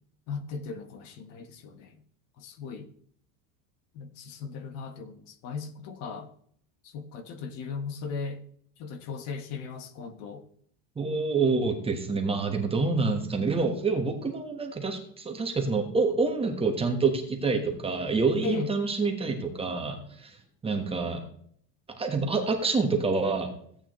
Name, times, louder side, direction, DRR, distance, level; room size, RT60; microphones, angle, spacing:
voice 1, 0.3-2.0 2.4-2.9 3.9-6.3 6.8-8.4 8.8-10.4 12.8-12.9 18.4-18.7, left 5 dB, 55° left, 1.2 m, -37 dB
voice 2, 11.0-20.4 20.6-21.2 22.0-23.5, right 4 dB, 15° right, 1.2 m, -27 dB
15.5 x 8.6 x 3.1 m
cardioid pair, 150°, 40 cm